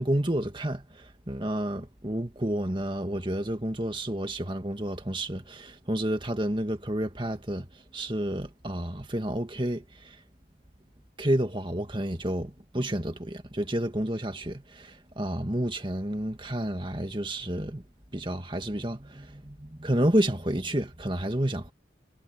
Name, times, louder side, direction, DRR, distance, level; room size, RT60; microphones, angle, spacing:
voice 1, 0.0-7.7 7.9-10.2 11.2-12.5 12.7-17.8 18.1-21.7, right 1 dB, 25° right, 2.0 m, -30 dB
head